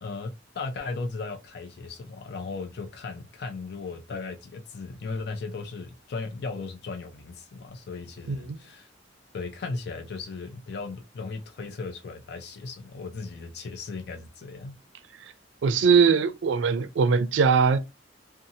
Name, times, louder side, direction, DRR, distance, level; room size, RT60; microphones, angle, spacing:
voice 1, 0.0-8.9 9.3-14.8, left 4 dB, 60° left, 0.4 m, -36 dB
voice 2, 8.3-8.6 15.6-17.8, right 5 dB, 90° right, 0.4 m, -21 dB
2.7 x 2.3 x 2.7 m
head